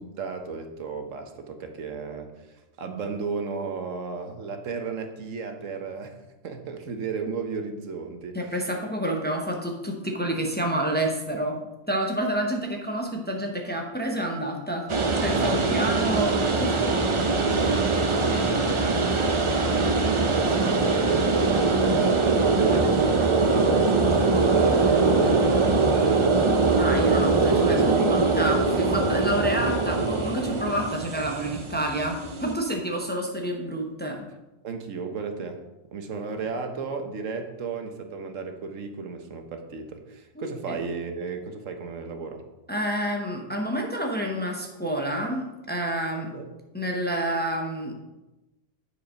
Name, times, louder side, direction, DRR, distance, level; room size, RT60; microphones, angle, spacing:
voice 1, 0.0-6.2 6.4-8.4 15.4-15.6 17.4-26.8 27.6-28.4 29.3-29.4 34.6-35.6 35.9-42.4 46.3-46.5, right 4 dB, 85° right, 6 dB, 1.3 m, -34 dB
voice 2, 8.3-11.6 11.9-14.9 15.2-16.9 26.8-34.3 40.4-40.8 42.7-46.3 46.7-47.9, right 1 dB, 10° left, 1 dB, 0.9 m, -29 dB
sound 1, 14.9-32.5, right 3 dB, 30° right, 0.6 m, -22 dB
9.5 x 5.1 x 5.1 m, 1.0 s
omnidirectional pair, 1.3 m